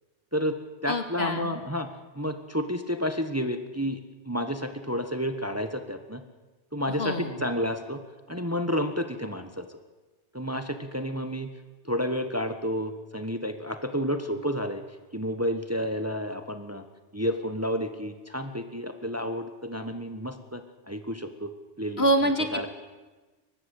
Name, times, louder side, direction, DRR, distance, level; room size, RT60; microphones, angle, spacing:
voice 1, 0.3-1.9 2.1-4.0 4.3-6.2 6.7-8.0 8.3-9.8 10.3-11.5 11.8-14.8 15.1-16.8 17.1-21.5 21.8-22.0 22.5-22.7, equal, 15° right, 8 dB, 1.3 m, -30 dB
voice 2, 0.9-1.6 7.0-7.4 22.0-22.7, right 1 dB, 65° left, 7 dB, 2.4 m, -26 dB
23.5 x 19.0 x 8.4 m, 1.2 s
omnidirectional pair, 1.1 m